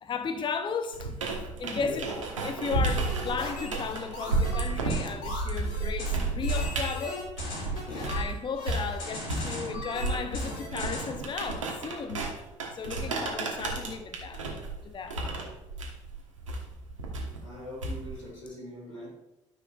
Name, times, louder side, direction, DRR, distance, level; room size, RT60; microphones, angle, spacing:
voice 1, 0.0-1.1 1.6-2.1 2.4-7.3 7.9-12.3 12.7-14.5 14.8-15.2, left 5 dB, 30° left, 0.7 m, -35 dB
sound 1, 0.9-8.3 8.7-18.3, right 3 dB, 85° right, 1.2 m, -32 dB
voice 2, 1.7-2.1 17.4-19.1, left 1 dB, 85° left, 2.2 m, -41 dB
sound 2, 3.1-11.3, left 2 dB, 60° left, 2.4 m, -38 dB
13.0 x 6.4 x 2.4 m
figure-of-eight pair, 50°, 16 cm